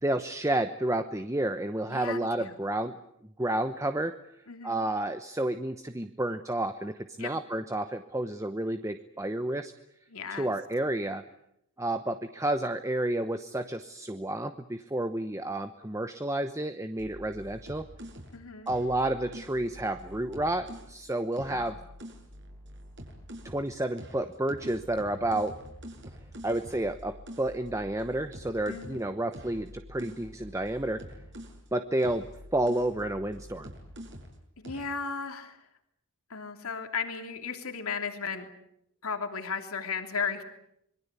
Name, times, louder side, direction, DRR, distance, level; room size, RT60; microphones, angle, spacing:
voice 1, 0.0-3.0 3.4-4.1 4.6-9.7 10.3-11.2 11.8-17.8 18.7-21.8 23.4-25.5 26.4-31.0 31.7-32.2 32.5-33.7, right 1 dB, 15° right, 9 dB, 0.9 m, -30 dB
voice 2, 1.9-2.6 4.5-4.9 7.2-7.3 10.1-10.5 18.3-18.7 21.5-21.8 28.7-29.1 34.6-35.6 36.3-38.5 39.0-40.4, left 5 dB, 75° left, 5 dB, 3.0 m, -35 dB
sound 1, 17.0-21.0 21.3-23.7 24.0-31.7 32.0-34.4 34.6-35.0, equal, 55° right, 6.9 m, -46 dB
26.5 x 23.0 x 8.3 m, 0.76 s
head